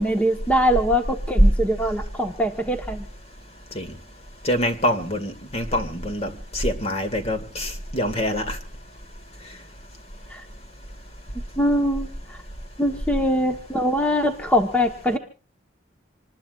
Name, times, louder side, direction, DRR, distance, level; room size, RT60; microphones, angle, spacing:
voice 1, 0.0-3.1 10.3-10.4 11.6-12.4 12.8-15.2, equal, 10° left, 1.2 m, -22 dB
voice 2, 4.4-8.6, left 1 dB, 35° left, 2.1 m, -25 dB
27.0 x 20.0 x 2.5 m
head